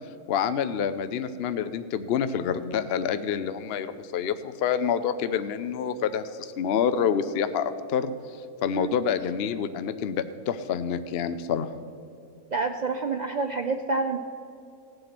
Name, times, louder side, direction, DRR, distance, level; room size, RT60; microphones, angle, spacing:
voice 1, 0.3-8.1 8.6-11.7, left 7 dB, 60° left, 11 dB, 0.7 m, -27 dB
voice 2, 12.5-14.2, right 4 dB, 80° right, 5 dB, 0.3 m, -28 dB
17.0 x 7.8 x 5.9 m, 2.6 s
omnidirectional pair, 1.5 m